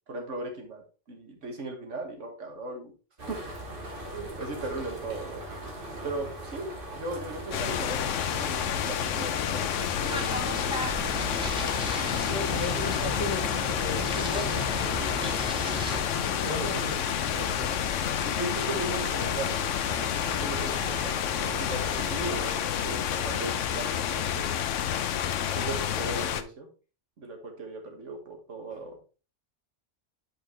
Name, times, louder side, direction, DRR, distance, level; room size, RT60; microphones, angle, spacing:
voice 1, 0.1-2.9 3.3-3.4 4.1-5.4 6.0-10.8 12.0-12.3 12.6-12.7 15.0-15.1 16.3-16.7 18.2-19.7 20.2-24.6 25.5-26.7 27.2-29.0, right 2 dB, 85° right, 1.9 m, -38 dB
sound 1, 3.2-22.6, right 1 dB, 45° right, 1.7 m, -40 dB
sound 2, 7.5-26.4, left 9 dB, 90° left, 1.0 m, -29 dB
sound 3, 10.0-16.0, equal, 5° right, 1.3 m, -35 dB
voice 2, 12.1-15.2 16.0-17.0 17.4-17.7, left 2 dB, 20° left, 3.2 m, -36 dB
8.8 x 5.0 x 3.2 m
omnidirectional pair, 1.2 m